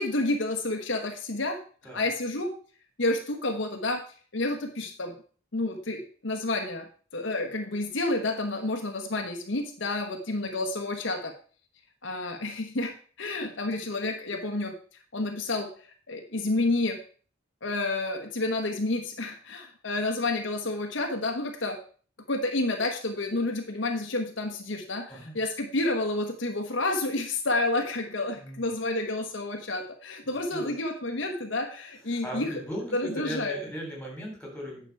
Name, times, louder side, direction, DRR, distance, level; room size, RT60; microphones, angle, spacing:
voice 1, 0.0-1.6 1.9-2.5 3.0-4.0 4.3-5.1 5.5-6.9 7.1-11.3 12.0-14.7 15.1-15.7 16.1-17.0 17.6-21.8 22.3-32.6 32.9-33.6, left 2 dB, 60° left, 3 dB, 1.1 m, -30 dB
voice 2, 25.1-25.4 28.3-28.7 30.2-30.7 32.1-34.9, equal, 5° left, -1 dB, 3.2 m, -38 dB
9.5 x 6.2 x 4.6 m, 0.42 s
head